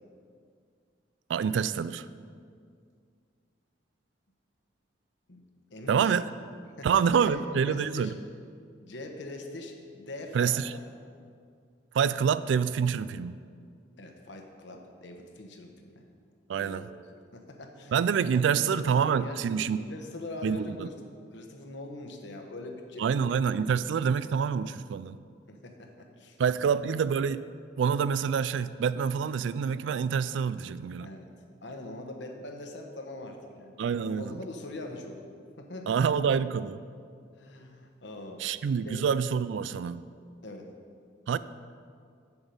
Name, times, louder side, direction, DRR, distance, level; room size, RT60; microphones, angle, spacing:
voice 1, 1.3-2.1 5.9-6.2 6.8-8.1 10.3-10.7 11.9-13.4 16.5-16.8 17.9-19.8 20.4-20.9 23.0-25.2 26.4-27.4 27.8-31.1 33.8-34.4 35.9-36.8 38.4-40.0 41.3-41.4, right 7 dB, 70° right, 15 dB, 0.3 m, -27 dB
voice 2, 5.7-6.1 6.8-8.1 8.8-10.8 14.0-16.0 16.6-17.0 17.3-19.4 19.7-20.9 21.3-23.3 25.5-26.7 31.0-31.3 31.6-33.8 34.0-35.2 35.6-36.0 37.4-38.4 38.8-39.0 40.4-40.7, left 2 dB, 65° left, 3 dB, 1.0 m, -42 dB
8.0 x 7.2 x 5.3 m, 2.2 s
head